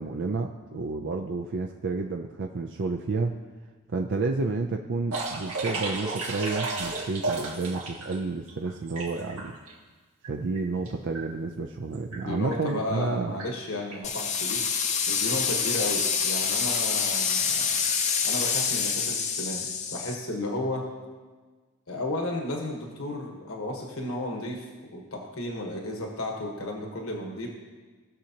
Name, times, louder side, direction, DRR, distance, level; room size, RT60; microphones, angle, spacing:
voice 1, 0.0-3.4 3.9-9.6 10.3-13.4, right 3 dB, 55° right, 3 dB, 0.5 m, -30 dB
sound 1, 5.1-8.2 8.5-9.7 10.2-10.3 10.6-10.9 11.1-11.2 11.9-12.2 12.5-12.7 13.4-13.5 13.9-14.0, right 3 dB, 85° right, 2.0 m, -33 dB
voice 2, 12.1-14.6 15.1-17.8 18.2-20.9 21.9-27.5, left 1 dB, 70° left, 1 dB, 1.2 m, -33 dB
sound 2, 14.0-20.1, left 6 dB, 30° left, 0.6 m, -27 dB
18.0 x 6.5 x 2.9 m, 1.4 s
head